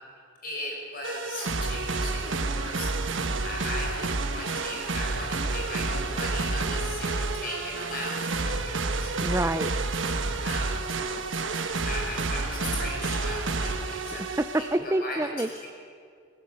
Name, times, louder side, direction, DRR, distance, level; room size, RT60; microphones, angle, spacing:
voice 1, 0.4-9.1 10.4-10.7 11.8-14.3 14.8-15.7, left 2 dB, 45° left, -1 dB, 5.3 m, -38 dB
sound 1, 1.0-14.8, right 3 dB, 75° right, 1.3 m, -29 dB
voice 2, 9.2-9.9 14.2-15.7, right 1 dB, 15° right, 10 dB, 0.4 m, -28 dB
18.5 x 18.0 x 8.0 m, 2.3 s
head